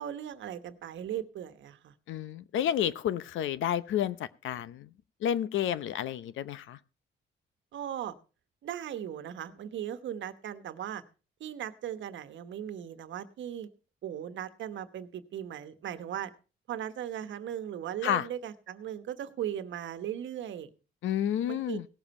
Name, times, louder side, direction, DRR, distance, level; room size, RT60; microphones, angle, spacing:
voice 1, 0.0-1.9 7.7-8.1 8.6-11.0 11.4-13.7 14.0-16.3 16.7-20.7 21.5-21.8, right 10 dB, 70° right, 1.2 m, -38 dB
voice 2, 2.1-4.2 4.4-4.9 5.2-6.8 18.0-18.3 21.0-21.9, left 10 dB, 80° left, 0.8 m, -30 dB
18.0 x 7.1 x 4.3 m
cardioid pair, 90°, 20 cm